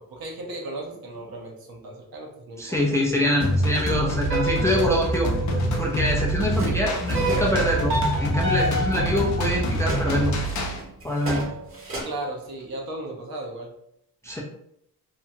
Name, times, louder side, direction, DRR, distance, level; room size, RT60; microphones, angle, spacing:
voice 1, 0.0-3.0 3.3-3.5 12.0-13.7, right 1 dB, 65° right, 0 dB, 0.8 m, -36 dB
voice 2, 2.6-5.3 5.8-7.9 8.2-10.3 11.0-11.5 14.2-14.4, left 1 dB, 10° left, -2 dB, 0.4 m, -24 dB
sound 1, 3.4-10.8, right 1 dB, 50° left, 0.6 m, -26 dB
sound 2, 4.3-6.4 7.1-10.3, right 1 dB, 80° right, 1.3 m, -29 dB
sound 3, 6.5-7.8 8.4-9.3 9.6-12.0, right 2 dB, 35° right, 0.9 m, -35 dB
2.8 x 2.2 x 2.6 m, 0.74 s
cardioid pair, 115°, 38 cm